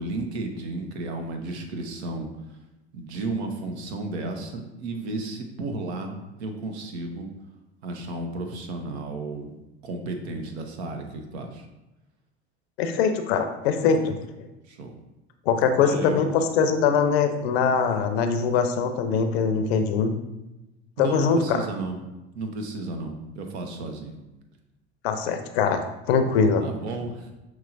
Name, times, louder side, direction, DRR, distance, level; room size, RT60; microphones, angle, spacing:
voice 1, 0.0-2.6 2.9-7.3 7.8-9.5 9.8-11.7 14.6-14.9 15.7-16.5 21.0-22.0 22.3-24.2 26.6-27.3, right 2 dB, 70° right, 4 dB, 0.8 m, -33 dB
voice 2, 12.8-14.5 15.5-20.1 21.0-21.6 25.0-25.8 26.1-26.6, left 6 dB, 65° left, 7 dB, 0.6 m, -22 dB
5.6 x 3.0 x 2.5 m, 0.99 s
hypercardioid pair, 75°, 34 cm